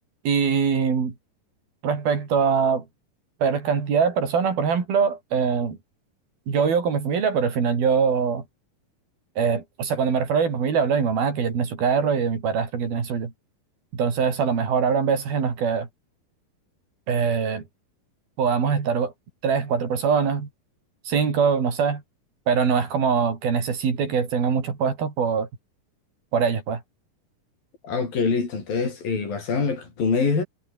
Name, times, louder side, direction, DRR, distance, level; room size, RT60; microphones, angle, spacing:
voice 1, 0.3-1.1 1.8-2.8 3.4-5.8 6.5-8.4 9.4-13.3 13.9-15.9 17.1-17.6 18.4-19.1 19.4-20.5 21.1-22.0 22.5-25.5 26.3-26.8, right 6 dB, 85° right, 6.3 m, -23 dB
voice 2, 27.8-30.4, left 5 dB, 70° left, 7.9 m, -24 dB
omnidirectional pair, 4.2 m